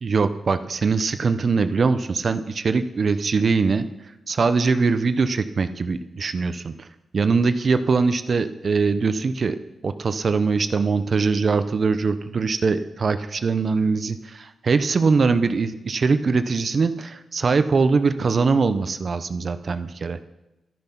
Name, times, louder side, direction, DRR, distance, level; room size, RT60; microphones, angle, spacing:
voice 1, 0.0-3.9 4.3-6.9 7.1-9.6 9.8-20.2, right 4 dB, 45° right, 11 dB, 0.6 m, -22 dB
12.0 x 10.5 x 5.7 m, 0.97 s
wide cardioid pair, 115°, 0 cm